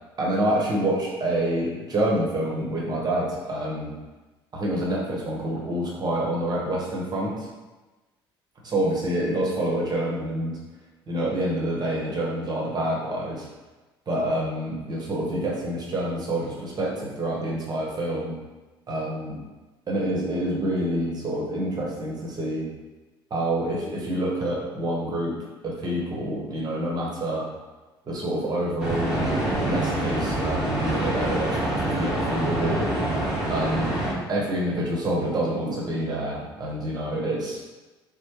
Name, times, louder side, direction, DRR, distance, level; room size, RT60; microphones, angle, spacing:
voice 1, 0.2-3.9 4.5-7.5 8.7-10.6 11.1-13.5 14.1-18.4 18.9-19.4 19.9-22.7 23.3-25.4 25.6-27.5 28.0-29.3 29.7-32.9 33.5-34.0 34.3-37.6, right 1 dB, 35° right, -3 dB, 1.1 m, -27 dB
sound 1, 28.8-34.1, right 1 dB, 5° right, 1.4 m, -26 dB
4.3 x 2.1 x 3.1 m, 1.2 s
figure-of-eight pair, 55°, 13 cm